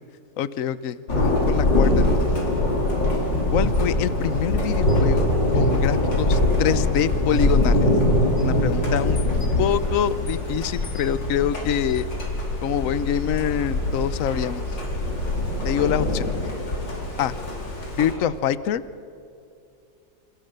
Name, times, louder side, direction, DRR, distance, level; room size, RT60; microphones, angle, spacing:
voice 1, 0.4-2.3 3.5-5.3 5.5-7.9 8.4-9.2 9.6-12.0 12.6-14.8 15.6-16.3 17.2-17.3 18.0-18.8, left 9 dB, 55° left, 15 dB, 1.1 m, -25 dB
Thunder, 1.1-18.1, left 1 dB, 80° left, 4.7 m, -23 dB
28.0 x 27.5 x 6.7 m, 2.5 s
omnidirectional pair, 2.0 m